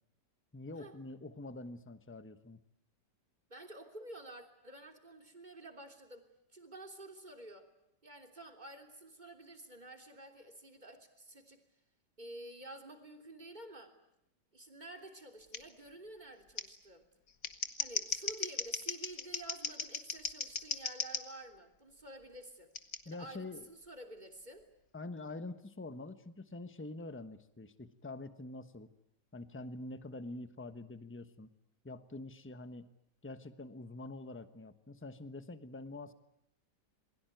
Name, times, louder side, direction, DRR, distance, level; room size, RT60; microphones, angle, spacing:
voice 1, 0.5-2.6 23.0-23.7 24.9-28.9 29.3-31.5 31.8-32.9 33.2-36.1, left 2 dB, 10° left, 11 dB, 1.0 m, -46 dB
voice 2, 3.5-7.7 8.0-11.6 12.2-14.0 14.5-17.1 17.8-22.7 23.1-24.7, right 1 dB, 25° right, 5 dB, 3.4 m, -50 dB
Scissors, 15.5-15.6 16.6-16.7 17.3-21.2 22.7-23.0, left 5 dB, 55° left, 2.0 m, -37 dB
28.0 x 21.5 x 9.2 m, 0.78 s
omnidirectional pair, 1.8 m